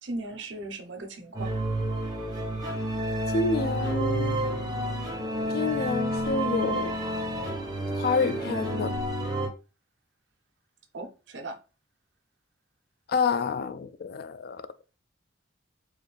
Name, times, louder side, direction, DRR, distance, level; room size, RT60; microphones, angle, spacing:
voice 1, 0.0-1.5 10.9-11.6, right 2 dB, 70° right, 0.8 m, -37 dB
sound 1, 1.3-9.5, right 1 dB, 20° right, 1.1 m, -30 dB
voice 2, 3.3-4.4 5.5-6.9 7.9-8.9 13.1-14.6, left 4 dB, 50° left, 0.3 m, -28 dB
4.8 x 2.6 x 3.2 m
head